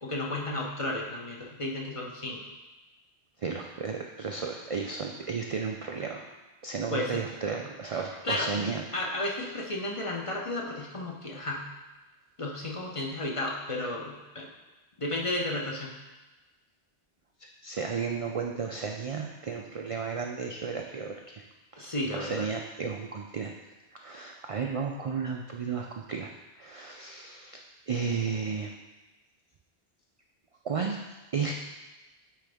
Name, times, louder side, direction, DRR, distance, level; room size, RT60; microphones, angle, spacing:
voice 1, 0.0-2.4 6.9-7.2 8.2-8.7 8.9-11.6 12.4-14.5 15.0-15.9 21.8-22.5, left 1 dB, 35° left, -2 dB, 0.8 m, -33 dB
voice 2, 3.4-6.2 6.6-8.8 17.4-21.4 21.7-23.5 23.9-26.3 26.6-28.7 30.6-31.0 31.3-31.5, right 5 dB, 50° right, 1 dB, 0.4 m, -33 dB
9.1 x 3.9 x 3.5 m, 1.2 s
omnidirectional pair, 1.1 m